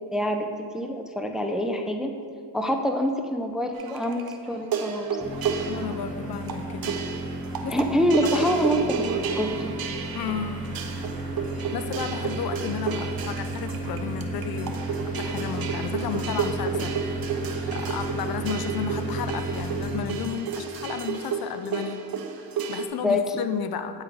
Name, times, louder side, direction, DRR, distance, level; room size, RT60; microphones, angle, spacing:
voice 1, 0.1-0.5 0.7-2.1 2.5-5.2 7.7-9.7 23.0-23.2, equal, ahead, 4 dB, 0.6 m, -26 dB
sound 1, 3.7-22.9, right 6 dB, 55° right, 0.8 m, -32 dB
sound 2, 5.2-20.0, right 2 dB, 15° left, 1.6 m, -33 dB
voice 2, 5.7-7.0 7.6-7.8 8.2-8.5 10.1-10.6 11.7-17.0 17.7-22.1 22.4-24.0, left 7 dB, 55° left, 10 dB, 0.6 m, -33 dB
8.9 x 3.8 x 4.7 m, 2.3 s
supercardioid pair, 60°, 43 cm